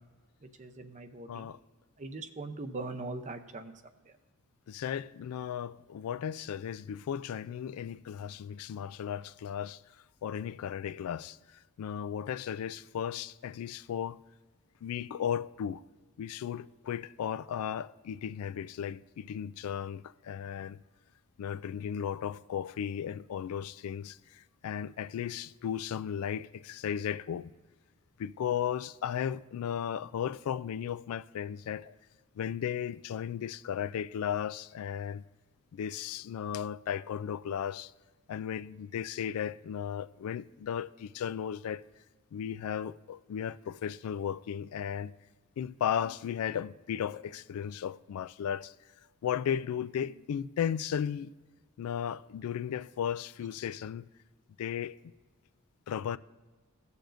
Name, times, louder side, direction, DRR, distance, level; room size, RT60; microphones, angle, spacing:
voice 1, 0.6-1.5 2.0-3.7, right 2 dB, 35° right, 0.6 m, -40 dB
voice 2, 1.3-1.6 4.7-9.8 10.2-14.2 14.8-15.8 16.2-20.8 21.4-27.5 28.2-31.9 32.4-35.2 35.7-37.9 38.3-41.8 42.3-45.1 45.6-48.7 49.2-51.3 51.8-54.1 54.6-55.0 55.9-56.2, left 8 dB, 80° left, 0.3 m, -35 dB
16.5 x 6.9 x 2.6 m
head